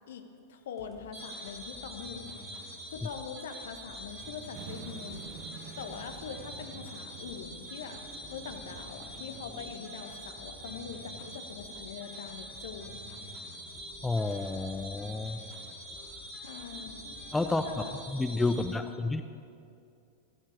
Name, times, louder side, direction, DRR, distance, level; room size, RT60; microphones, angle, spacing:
voice 1, 0.1-2.4 2.9-8.0 8.3-13.2 16.3-17.1 17.4-17.9 18.2-19.2, left 6 dB, 60° left, 6 dB, 1.3 m, -43 dB
sound 1, 0.8-18.1, equal, 10° right, 4.1 m, -52 dB
sound 2, 1.1-18.6, equal, 25° right, 4.7 m, -45 dB
sound 3, 4.5-18.5, right 8 dB, 40° right, 1.2 m, -53 dB
voice 2, 14.0-15.4 17.3-17.6 18.1-19.2, left 3 dB, 10° left, 9 dB, 0.6 m, -30 dB
20.0 x 14.5 x 4.8 m, 2.5 s
figure-of-eight pair, 90°, 0 cm